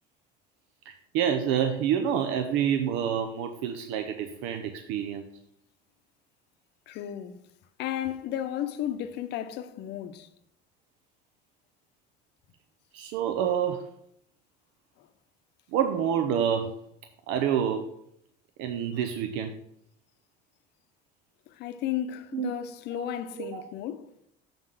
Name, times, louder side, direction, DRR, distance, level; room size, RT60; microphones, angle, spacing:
voice 1, 0.9-5.3 12.9-13.8 15.7-16.8 17.3-17.9 18.6-19.5 22.3-22.5 22.9-23.1 23.4-23.6, right 8 dB, 85° right, 0.6 m, -28 dB
voice 2, 6.9-7.4 7.8-10.3 15.0-15.1 21.5-24.1, left 11 dB, 65° left, 0.7 m, -34 dB
7.0 x 3.8 x 6.2 m
cardioid pair, 135°, 19 cm